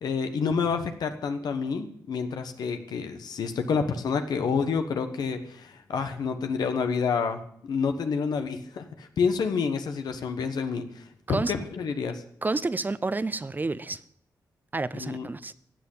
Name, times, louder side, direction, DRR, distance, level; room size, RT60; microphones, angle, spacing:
voice 1, 0.0-12.2 14.9-15.3, left 5 dB, 85° left, 1.3 m, -29 dB
voice 2, 12.4-14.0 14.7-15.5, right 3 dB, 25° right, 0.8 m, -29 dB
15.0 x 7.9 x 8.6 m
cardioid pair, 70°, 7 cm